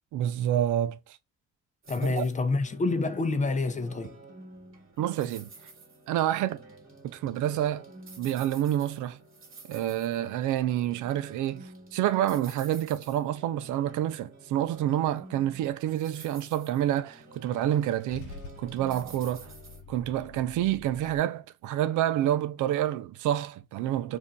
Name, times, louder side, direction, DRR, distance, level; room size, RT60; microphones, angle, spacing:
voice 1, 0.1-1.2 2.0-2.2 5.0-5.5 6.1-6.6 7.1-7.9 8.2-9.2 9.7-18.3 18.6-19.5 19.9-24.2, right 12 dB, 80° right, 0.5 m, -28 dB
sound 1, 1.8-19.8, right 2 dB, 45° right, 1.3 m, -50 dB
voice 2, 1.9-4.2, left 3 dB, 25° left, 0.6 m, -27 dB
Car / Engine starting / Idling, 17.7-21.2, left 4 dB, 80° left, 0.7 m, -47 dB
2.6 x 2.2 x 3.7 m
cardioid pair, 90°, 30 cm